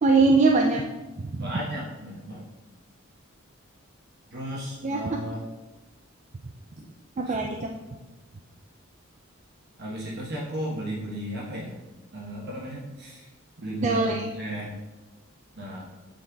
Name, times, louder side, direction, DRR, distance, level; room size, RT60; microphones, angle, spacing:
voice 1, 0.0-0.8 1.2-1.4 4.8-5.2 7.2-7.7 13.8-14.3, right 3 dB, 35° right, 2 dB, 0.4 m, -22 dB
voice 2, 1.4-2.5 4.3-5.4 7.2-7.4 9.8-11.8 12.1-13.3 13.6-14.8 15.6-15.9, right 1 dB, 55° right, -4 dB, 1.2 m, -34 dB
8.4 x 3.9 x 3.6 m, 1.2 s
head